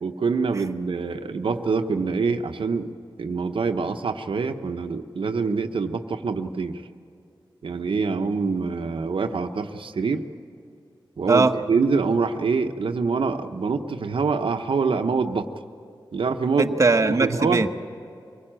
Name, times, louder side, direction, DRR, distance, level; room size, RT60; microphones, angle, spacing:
voice 1, 0.0-2.9 3.2-6.8 7.6-10.2 11.2-15.5 16.1-16.7 17.1-17.6, right 4 dB, 85° right, 7 dB, 0.9 m, -25 dB
voice 2, 16.6-17.7, right 3 dB, 35° right, 5 dB, 1.0 m, -20 dB
24.5 x 17.0 x 8.9 m, 2.5 s
wide cardioid pair, 70°, 9 cm